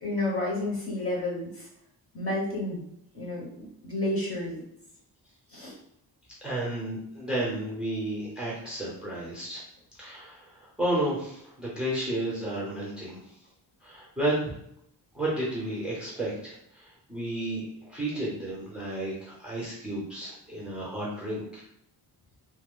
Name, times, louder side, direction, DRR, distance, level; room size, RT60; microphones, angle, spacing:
voice 1, 0.0-1.6 2.1-2.8 3.1-4.6 5.5-5.7, left 2 dB, 30° left, -4 dB, 1.0 m, -31 dB
voice 2, 6.4-9.6 10.0-13.2 13.8-14.5 15.1-17.7 17.9-21.6, right 1 dB, ahead, -6 dB, 0.7 m, -32 dB
3.1 x 2.1 x 3.6 m, 0.75 s
wide cardioid pair, 175°, 42 cm